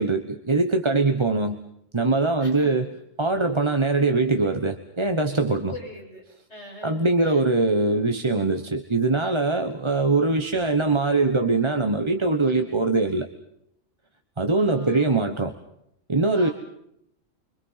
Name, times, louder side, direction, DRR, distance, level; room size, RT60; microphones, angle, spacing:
voice 1, 0.0-1.6 1.9-2.9 3.2-5.7 6.8-13.3 14.4-15.5 16.1-16.5, right 3 dB, 25° right, 7 dB, 1.2 m, -22 dB
voice 2, 2.4-2.7 5.7-6.2 6.5-7.4 12.4-12.8 14.5-15.5 16.3-16.5, left 1 dB, 55° left, -2 dB, 7.5 m, -43 dB
30.0 x 24.5 x 5.8 m, 0.75 s
omnidirectional pair, 1.3 m